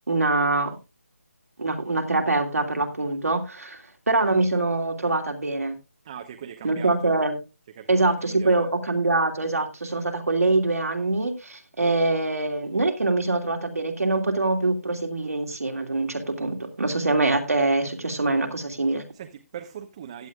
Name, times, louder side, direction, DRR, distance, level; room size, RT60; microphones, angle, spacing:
voice 1, 0.1-0.8 1.6-5.8 6.6-7.4 7.9-19.0, right 2 dB, 85° right, 2.8 m, -24 dB
voice 2, 6.0-7.1 7.8-8.7 19.1-20.3, right 9 dB, 25° right, 1.0 m, -40 dB
16.0 x 10.5 x 2.4 m
figure-of-eight pair, 165°, 8 cm